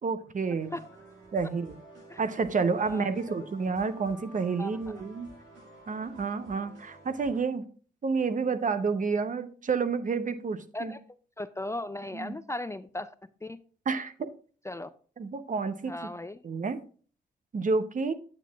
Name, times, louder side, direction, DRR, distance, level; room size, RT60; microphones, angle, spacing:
voice 1, 0.0-0.8 1.3-1.8 2.2-5.3 5.9-7.6 8.0-10.9 12.1-12.3 13.9-14.3 15.2-15.9 16.4-16.8 17.5-18.1, right 4 dB, 45° right, 10 dB, 0.8 m, -29 dB
sound 1, 0.6-7.4, right 2 dB, 85° right, 2.2 m, -51 dB
voice 2, 2.7-3.5 4.6-4.9 10.7-11.0 11.4-13.1 13.4-13.6 14.6-14.9 15.8-16.4, left 1 dB, 15° left, 13 dB, 0.4 m, -37 dB
9.0 x 7.4 x 2.4 m, 0.42 s
supercardioid pair, 50°, 19 cm